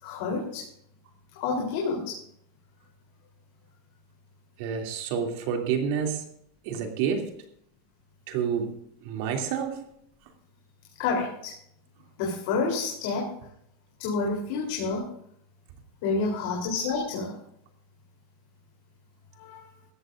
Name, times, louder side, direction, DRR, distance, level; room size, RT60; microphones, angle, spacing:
voice 1, 0.0-0.7 1.4-2.2 11.0-11.5 12.2-13.3 14.0-15.1 16.0-17.4 19.4-19.7, left 4 dB, 60° left, -1 dB, 3.6 m, -29 dB
voice 2, 4.6-6.2 6.6-7.4 8.3-9.9, right 7 dB, 60° right, 3 dB, 2.7 m, -29 dB
18.5 x 14.0 x 2.6 m, 0.69 s
supercardioid pair, 155°, 0 cm